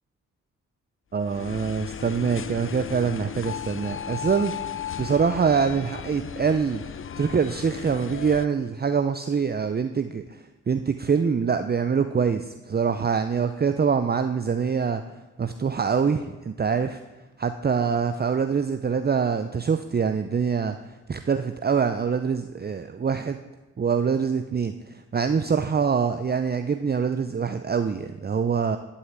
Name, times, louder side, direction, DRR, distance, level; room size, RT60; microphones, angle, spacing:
voice 1, 1.1-4.6 5.0-6.8 7.2-15.0 15.4-17.0 17.4-23.4 23.8-28.8, right 6 dB, 30° right, 9 dB, 0.6 m, -25 dB
sound 1, 1.2-8.5, left 8 dB, 45° left, 0.6 m, -35 dB
11.0 x 5.7 x 8.3 m, 1.2 s
supercardioid pair, 40°, 30 cm